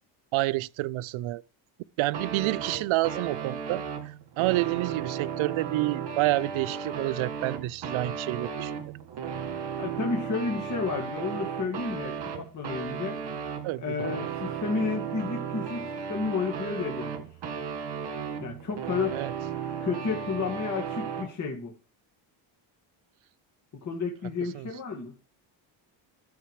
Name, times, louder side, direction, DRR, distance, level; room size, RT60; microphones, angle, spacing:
voice 1, 0.3-1.4 2.0-3.8 4.4-8.8 13.6-14.0 19.1-19.3 24.5-24.7, right 18 dB, 80° right, 0.6 m, -28 dB
sound 1, 2.1-21.3, right 7 dB, 55° right, 2.2 m, -35 dB
voice 2, 9.8-13.2 13.8-17.2 18.4-19.2 19.8-21.7 23.8-25.1, left 4 dB, 35° left, 2.2 m, -31 dB
13.0 x 6.6 x 4.8 m
cardioid pair, 130°, 48 cm